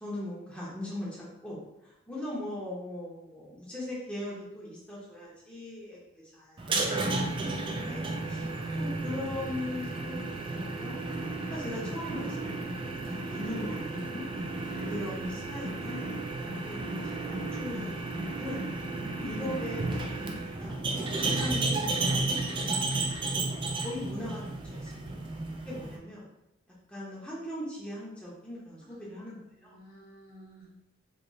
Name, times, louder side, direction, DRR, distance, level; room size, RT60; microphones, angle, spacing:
voice 1, 0.0-8.4 8.7-10.2 10.5-11.1 11.5-14.2 14.9-16.3 16.7-18.6 19.2-20.8 21.2-22.9 23.5-25.2 25.7-26.3 26.9-29.7, left 1 dB, 5° left, -7 dB, 0.7 m, -40 dB
sound 1, 6.6-26.0, right 2 dB, 25° right, 0.3 m, -33 dB
voice 2, 14.6-15.2 28.9-30.7, equal, 50° left, -4 dB, 0.9 m, -51 dB
3.1 x 2.8 x 2.6 m, 0.86 s
head